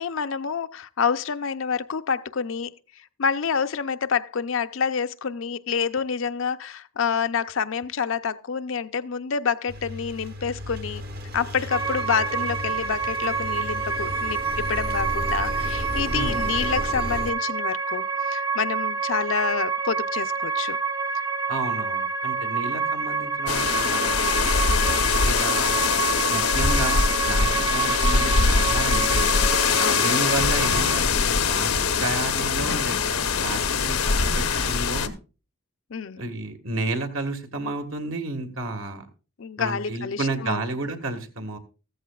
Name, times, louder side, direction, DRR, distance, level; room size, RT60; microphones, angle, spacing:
voice 1, 0.0-2.7 3.2-11.0 11.3-20.8 24.7-24.9 29.8-30.1 35.9-36.2 39.4-40.6, left 6 dB, 65° left, 0.5 m, -28 dB
Engine, 9.7-17.3, equal, 45° right, 0.9 m, -33 dB
sound 1, 11.7-31.0, right 5 dB, 15° right, 0.6 m, -28 dB
voice 2, 16.1-16.4 21.5-24.5 25.2-25.9 26.3-29.4 30.0-31.7 32.0-35.1 36.2-39.1 39.6-41.6, right 2 dB, 70° right, 1.7 m, -31 dB
sound 2, 23.5-35.1, left 5 dB, 80° left, 0.9 m, -22 dB
14.5 x 14.0 x 2.4 m
head